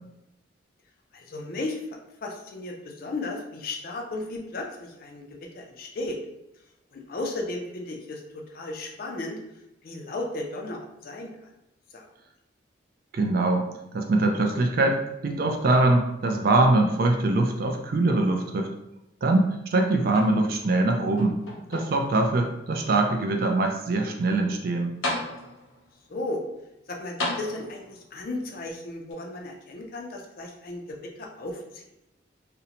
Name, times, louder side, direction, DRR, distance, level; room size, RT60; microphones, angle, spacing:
voice 1, 1.1-1.8 2.2-6.2 6.9-9.4 9.8-11.5 11.9-12.0 20.0-20.1 26.1-26.4 26.9-31.8, left 2 dB, 50° left, 1 dB, 0.4 m, -35 dB
voice 2, 13.1-13.7 13.9-18.7 19.2-21.4 21.7-24.9, right 2 dB, 50° right, 3 dB, 0.3 m, -23 dB
sound 1, 20.1-20.8 21.2-22.2 22.9-23.0 24.6-24.7 25.0-25.8 27.2-28.0 29.1-29.2, left 1 dB, 90° left, 0.7 m, -33 dB
2.5 x 2.1 x 2.8 m, 0.87 s
head